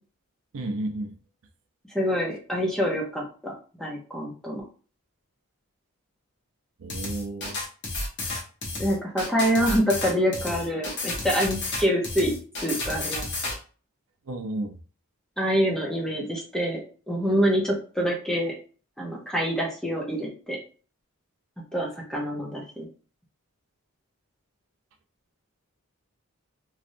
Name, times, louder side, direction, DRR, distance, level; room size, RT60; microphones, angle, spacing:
voice 1, 0.5-1.1 6.8-7.6 14.3-14.7, right 2 dB, 70° right, 6 dB, 0.5 m, -32 dB
voice 2, 1.9-3.5 3.8-4.6 8.8-12.3 12.6-13.3 15.4-16.8 17.1-18.5 19.0-20.6 21.7-22.9, equal, 5° left, -2 dB, 0.7 m, -26 dB
sound 1, 6.9-13.6, left 2 dB, 55° left, 1.0 m, -31 dB
3.1 x 2.6 x 2.6 m, 0.38 s
head